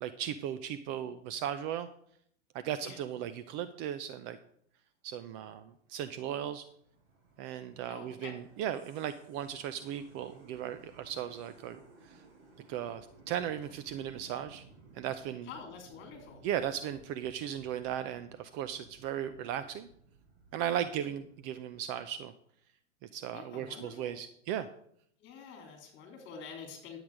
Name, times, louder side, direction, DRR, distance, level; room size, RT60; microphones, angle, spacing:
voice 1, 0.0-1.9 2.5-4.4 5.0-6.7 7.4-12.2 12.7-14.6 14.9-15.5 16.4-19.9 20.5-22.3 23.0-24.7, right 10 dB, 30° right, 11 dB, 0.5 m, -37 dB
sound 1, 5.6-22.1, right 3 dB, 50° right, 4.3 m, -59 dB
voice 2, 7.9-8.4 15.5-16.4 23.3-24.1 25.2-27.0, left 6 dB, 30° left, 3 dB, 3.4 m, -47 dB
10.5 x 8.0 x 4.9 m, 0.67 s
hypercardioid pair, 115°, 36 cm